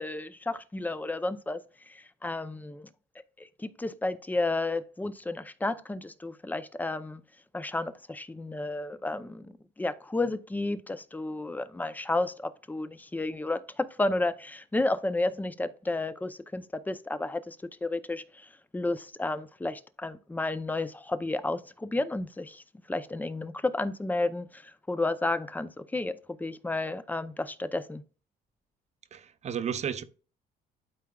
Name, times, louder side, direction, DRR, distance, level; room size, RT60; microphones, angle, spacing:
voice 1, 0.0-1.6 1.9-2.9 3.4-7.2 7.5-28.0, left 2 dB, 10° left, 0.6 m, -32 dB
voice 2, 29.1-30.0, right 8 dB, 40° right, 0.8 m, -33 dB
12.0 x 4.6 x 2.4 m
cardioid pair, 110°, 17 cm